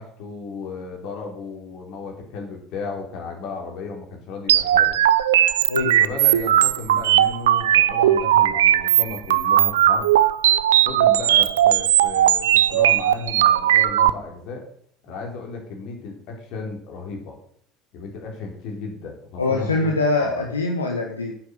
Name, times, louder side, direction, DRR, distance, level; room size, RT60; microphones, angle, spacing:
voice 1, 0.0-5.0 6.0-10.1 10.8-14.6 15.0-17.4 17.9-19.9 20.2-20.5, left 4 dB, 55° left, 2 dB, 3.8 m, -34 dB
sound 1, 4.5-14.1, right 11 dB, 75° right, 0.5 m, -18 dB
voice 2, 19.4-21.3, left 3 dB, 85° left, 1 dB, 1.3 m, -23 dB
9.3 x 8.7 x 7.0 m, 0.65 s
figure-of-eight pair, 65°, 0 cm